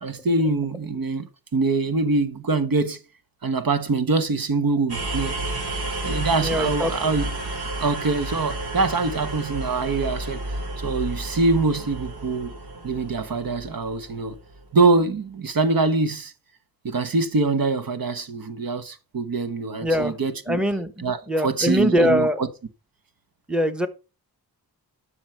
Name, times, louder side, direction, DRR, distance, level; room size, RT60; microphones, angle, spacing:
voice 1, 0.0-1.3 1.5-3.0 3.4-5.4 6.0-7.3 7.8-12.5 12.8-14.4 14.7-16.3 16.8-20.6 21.0-22.5, right 3 dB, 65° right, 1.2 m, -24 dB
sound 1, 4.9-14.7, right 2 dB, 90° right, 2.6 m, -31 dB
voice 2, 6.4-7.1 19.8-20.1 20.5-20.9 21.3-22.4 23.5-23.9, equal, ahead, 1.1 m, -22 dB
11.5 x 6.4 x 4.5 m
wide cardioid pair, 85°, 37 cm